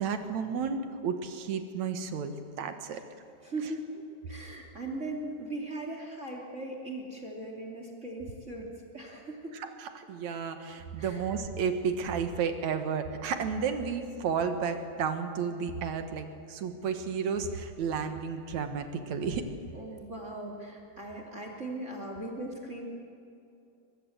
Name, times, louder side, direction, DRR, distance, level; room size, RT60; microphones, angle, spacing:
voice 1, 0.0-3.0 9.5-19.4, right 6 dB, 65° right, 8 dB, 2.6 m, -32 dB
voice 2, 3.4-9.5 11.0-11.3 19.7-22.9, right 2 dB, 25° right, 1 dB, 2.8 m, -39 dB
23.0 x 21.5 x 7.9 m, 2.6 s
omnidirectional pair, 3.7 m